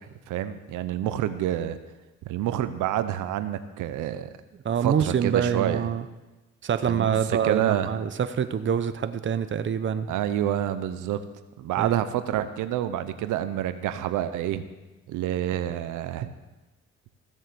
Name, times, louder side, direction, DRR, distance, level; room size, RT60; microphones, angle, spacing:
voice 1, 0.3-1.8 2.3-4.3 4.8-5.8 6.9-7.9 10.1-11.2 11.6-14.7 15.1-16.3, right 11 dB, 90° right, 11 dB, 0.8 m, -28 dB
voice 2, 4.6-6.0 6.6-10.1 11.8-12.0, right 7 dB, 40° right, 11 dB, 0.8 m, -26 dB
16.0 x 7.3 x 6.9 m, 1.1 s
cardioid pair, 90°, 30 cm